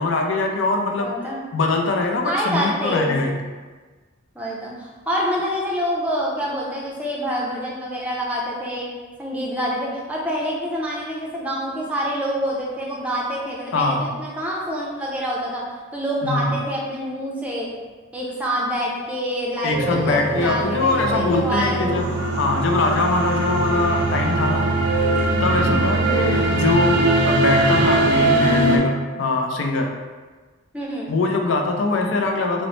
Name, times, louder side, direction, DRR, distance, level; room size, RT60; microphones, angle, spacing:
voice 1, 0.0-1.1 1.5-3.3 13.7-14.1 16.2-16.5 19.6-22.1 22.4-24.7 25.4-29.9 31.1-32.7, left 2 dB, 70° left, 2 dB, 0.4 m, -22 dB
voice 2, 1.0-1.4 2.2-3.1 4.4-8.9 9.2-15.6 15.9-17.7 18.1-22.0 25.5-25.8 30.7-31.1, equal, 5° right, -4 dB, 0.5 m, -26 dB
sound 1, 19.7-28.8, right 2 dB, 55° right, 0.5 m, -21 dB
3.8 x 2.0 x 3.0 m, 1.3 s
head